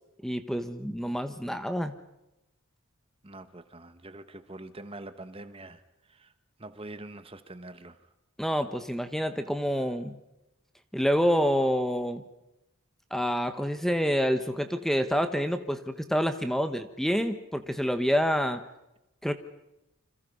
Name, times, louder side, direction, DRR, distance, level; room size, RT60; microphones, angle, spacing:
voice 1, 0.2-1.9 8.4-10.2 10.9-12.2 13.1-18.6 19.2-19.3, equal, ahead, 1.3 m, -27 dB
voice 2, 3.2-5.8 6.1-6.3 6.6-8.0, right 2 dB, 25° right, 1.3 m, -44 dB
29.5 x 26.5 x 5.5 m
head